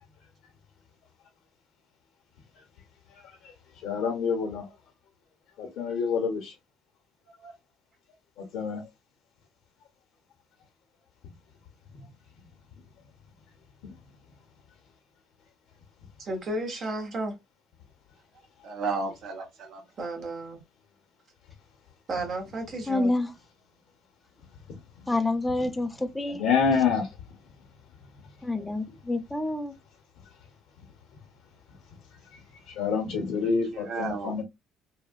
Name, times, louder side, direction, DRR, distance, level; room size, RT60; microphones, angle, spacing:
voice 1, 3.1-4.6 5.6-6.5 7.4-7.5 8.4-8.9 11.2-11.3 11.9-12.1 13.8-13.9 24.7-24.8 25.6-25.7 26.3-27.2 28.1-28.2 28.9-29.0 32.1-34.4, left 6 dB, 70° left, 0.8 m, -29 dB
voice 2, 16.2-17.3 20.0-20.6 22.1-23.1, right 2 dB, 40° right, 1.1 m, -33 dB
voice 3, 18.6-19.8 33.4-33.5 33.9-34.4, right 4 dB, 55° right, 0.7 m, -33 dB
voice 4, 22.9-23.3 25.1-26.4 28.4-29.7, left 2 dB, 10° left, 0.5 m, -28 dB
3.4 x 2.2 x 2.2 m
cardioid pair, 135°, 0 cm